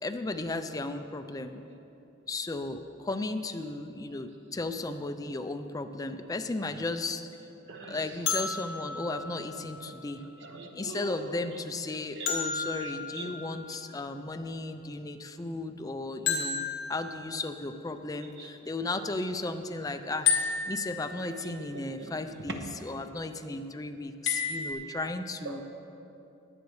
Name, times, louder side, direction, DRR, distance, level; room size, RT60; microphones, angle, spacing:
voice 1, 0.0-1.6 2.3-7.3 7.9-10.2 10.7-20.3 20.6-25.6, left 2 dB, 15° left, 8 dB, 0.4 m, -35 dB
voice 2, 7.7-8.3 9.1-9.2 10.2-11.4 12.1-12.5 12.8-13.3 18.4-18.5 21.2-22.1 22.5-22.6 22.9-23.0 25.4-25.6, right 4 dB, 60° right, 3 dB, 1.1 m, -42 dB
sound 1, 8.3-10.2 12.3-14.1 16.3-17.7 20.3-21.6 24.3-24.7, left 6 dB, 60° left, 1.8 m, -32 dB
20.5 x 8.3 x 3.2 m, 2.8 s
head